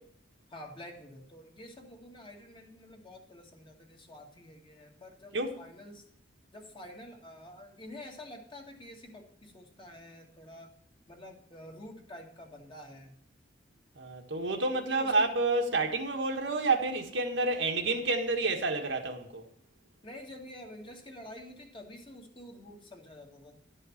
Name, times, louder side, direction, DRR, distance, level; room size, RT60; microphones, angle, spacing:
voice 1, 0.5-6.1 6.5-10.7 11.1-13.1 14.7-15.3 20.0-23.6, left 1 dB, 30° left, 2.0 m, -48 dB
voice 2, 14.0-19.4, right 3 dB, 70° right, 1.6 m, -29 dB
12.0 x 5.6 x 7.2 m
head